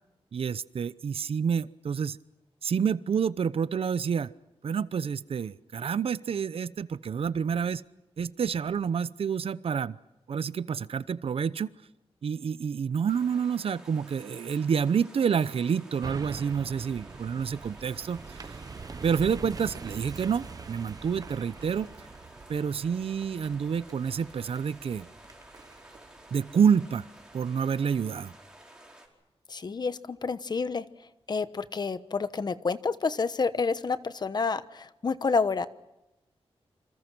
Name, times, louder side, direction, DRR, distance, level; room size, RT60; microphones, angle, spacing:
voice 1, 0.3-2.2 2.6-4.3 4.6-7.8 8.2-10.0 10.3-11.7 12.2-18.5 19.0-21.9 22.5-25.1 26.3-27.1 27.3-28.3, right 7 dB, 65° right, 17 dB, 0.8 m, -28 dB
sound 1, 13.1-29.1, right 1 dB, 5° right, 4.7 m, -52 dB
sound 2, 16.0-27.5 27.9-28.0, right 4 dB, 35° right, 0.9 m, -44 dB
voice 2, 29.5-30.8 31.3-35.7, left 4 dB, 40° left, 13 dB, 1.1 m, -29 dB
28.0 x 27.0 x 6.2 m, 0.96 s
wide cardioid pair, 155°, 10 cm